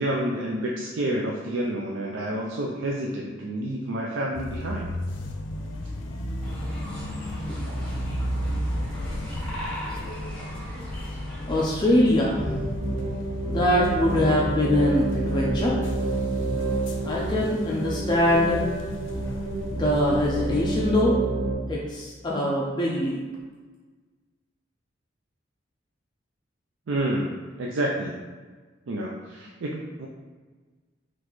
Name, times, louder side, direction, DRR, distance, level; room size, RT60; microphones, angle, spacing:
voice 1, 0.0-4.9 26.9-27.3 27.6-28.2 28.9-30.1, right 1 dB, 85° right, -2 dB, 0.4 m, -29 dB
sound 1, 4.3-20.9, left 1 dB, 80° left, 0.5 m, -34 dB
sound 2, 6.4-11.6, equal, 5° left, 0.9 m, -38 dB
voice 2, 11.5-12.7 13.5-15.8 17.0-18.6 19.7-21.2 21.7-23.2, left 1 dB, 25° left, -4 dB, 0.4 m, -23 dB
sound 3, 12.3-21.5, right 2 dB, 55° right, 0.9 m, -29 dB
4.0 x 3.1 x 3.0 m, 1.4 s
head